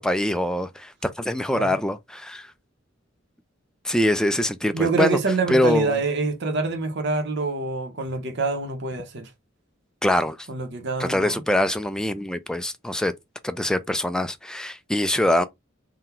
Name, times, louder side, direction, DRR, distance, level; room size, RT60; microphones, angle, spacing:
voice 1, 0.0-2.5 3.8-5.2 5.5-5.9 10.0-10.4 11.0-13.1 13.4-15.4, left 1 dB, 5° left, 0.4 m, -23 dB
voice 2, 4.7-9.3 10.5-11.4, right 4 dB, 60° right, 0.8 m, -26 dB
3.8 x 2.2 x 4.2 m
head